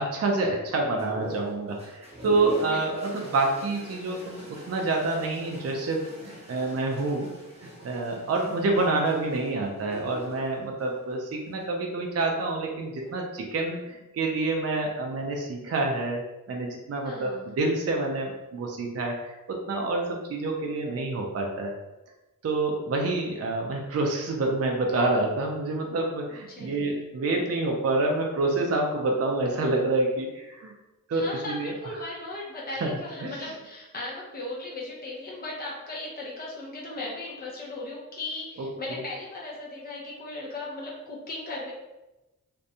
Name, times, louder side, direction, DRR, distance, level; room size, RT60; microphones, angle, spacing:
voice 1, 0.0-7.3 7.6-16.2 16.5-21.7 22.4-30.7 31.1-32.0 32.8-32.9 33.2-33.5 38.9-39.0, right 2 dB, 45° right, 1 dB, 0.4 m, -27 dB
sound 1, 1.0-11.7 12.8-13.4, equal, 20° right, 0.9 m, -43 dB
voice 2, 2.6-3.1 17.0-17.5 26.5-27.0 31.1-41.7, left 2 dB, 25° left, -4 dB, 0.6 m, -37 dB
2.6 x 2.2 x 2.6 m, 1.0 s
wide cardioid pair, 70°, 34 cm